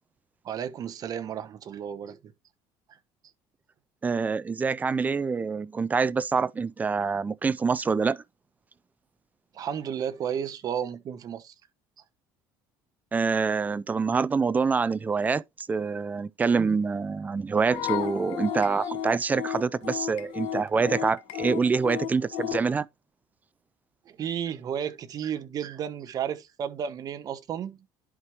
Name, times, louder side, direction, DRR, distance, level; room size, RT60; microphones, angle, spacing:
voice 1, 0.4-2.3 9.5-11.5 24.1-27.8, right 8 dB, 40° right, 1.0 m, -33 dB
voice 2, 4.0-8.2 13.1-22.9, right 5 dB, 15° right, 0.4 m, -26 dB
sound 1, 17.7-22.7, left 9 dB, 65° left, 1.2 m, -33 dB
11.0 x 4.9 x 3.0 m
cardioid pair, 145°, 10 cm